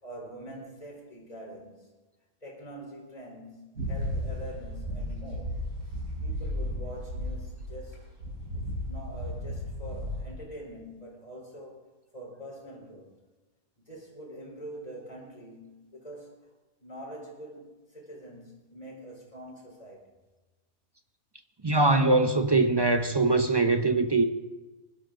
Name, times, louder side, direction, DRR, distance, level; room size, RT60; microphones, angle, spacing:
voice 1, 0.0-1.9 2.4-5.6 6.2-8.1 8.8-11.8 12.1-13.1 13.8-16.4 16.8-20.0, right 1 dB, 25° left, 4.0 m, -44 dB
sound 1, 3.7-7.9 8.2-10.3, equal, 80° right, 5.7 m, -34 dB
voice 2, 21.6-24.2, right 2 dB, 30° right, 0.4 m, -22 dB
20.5 x 12.0 x 3.8 m
omnidirectional pair, 1.5 m